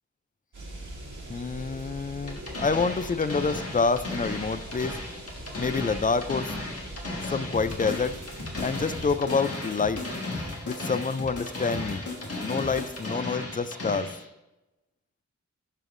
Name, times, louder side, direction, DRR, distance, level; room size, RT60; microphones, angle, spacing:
sound 1, 0.5-9.2, right 1 dB, 85° right, 1.8 m, -42 dB
voice 1, 1.3-5.0 5.6-6.5 7.3-8.2 8.6-10.0 10.6-12.0 12.4-14.1, left 4 dB, 30° left, 13 dB, 0.4 m, -27 dB
sound 2, 2.3-14.3, left 2 dB, 50° left, 1.7 m, -36 dB
sound 3, 7.5-13.1, left 2 dB, 85° left, 1.9 m, -38 dB
12.0 x 5.3 x 2.5 m, 0.99 s
wide cardioid pair, 80°, 30 cm